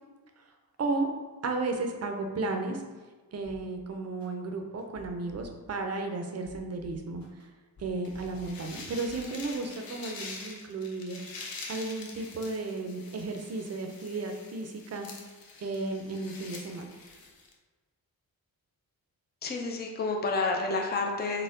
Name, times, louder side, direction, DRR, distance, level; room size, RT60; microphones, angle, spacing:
voice 1, 1.4-2.8 3.3-7.2 7.8-11.3 11.7-15.1 15.6-16.8, right 3 dB, 45° right, 4 dB, 0.5 m, -34 dB
sound 1, 3.4-3.6 4.2-4.3 4.8-5.8 6.3-7.4 7.8-8.8 9.1-9.3, right 3 dB, 55° left, 1.2 m, -49 dB
sound 2, 8.0-17.5, left 3 dB, 75° left, 0.7 m, -45 dB
voice 2, 19.4-21.4, left 3 dB, 30° left, 1 dB, 0.5 m, -29 dB
4.1 x 2.2 x 3.8 m, 1.3 s
wide cardioid pair, 125°, 35 cm